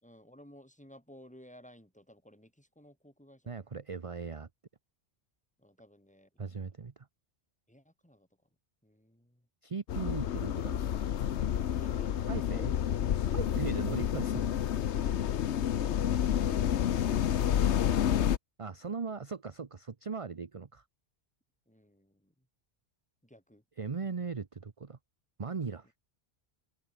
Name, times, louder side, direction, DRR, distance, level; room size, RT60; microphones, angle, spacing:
voice 1, 0.0-3.6 5.6-6.6 7.7-8.3 8.8-9.5 11.8-12.1 21.7-22.5 23.2-23.6, equal, 5° left, 5.4 m, -56 dB
voice 2, 3.5-4.5 6.4-7.1 9.6-10.8 12.3-12.8 13.3-14.5 18.6-20.8 23.8-25.0 25.4-26.0, right 5 dB, 35° right, 0.9 m, -38 dB
sound 1, 9.9-18.4, left 10 dB, 85° left, 1.1 m, -29 dB
omnidirectional pair, 1.1 m